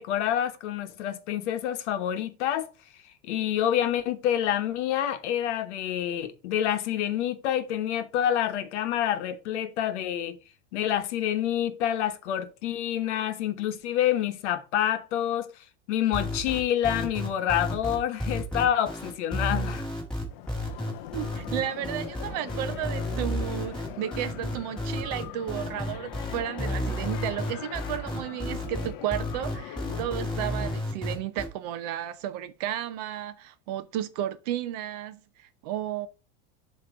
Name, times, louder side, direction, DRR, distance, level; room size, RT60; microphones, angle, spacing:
voice 1, 0.0-2.7 3.2-10.4 10.7-15.5 15.9-19.9, left 10 dB, 70° left, 1.1 m, -27 dB
sound 1, 16.1-31.5, left 1 dB, ahead, 2.2 m, -31 dB
sound 2, 20.3-30.8, left 12 dB, 45° left, 0.6 m, -41 dB
voice 2, 21.1-36.1, right 11 dB, 35° right, 0.4 m, -33 dB
7.7 x 3.0 x 5.9 m
supercardioid pair, 175°, 36 cm